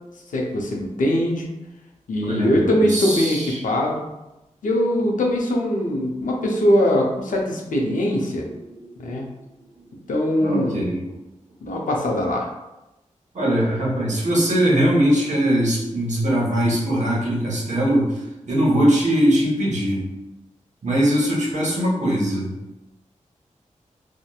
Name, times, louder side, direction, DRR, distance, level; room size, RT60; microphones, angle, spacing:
voice 1, 0.3-1.5 2.1-4.0 4.6-8.5 9.0-9.3 10.1-10.9 11.6-12.5, left 1 dB, 80° left, -1 dB, 0.5 m, -21 dB
voice 2, 2.3-3.6 9.1-9.2 10.4-11.0 13.3-20.0 20.8-22.5, equal, 65° right, -4 dB, 0.8 m, -21 dB
2.8 x 2.1 x 2.2 m, 0.97 s
cardioid pair, 55°, 13 cm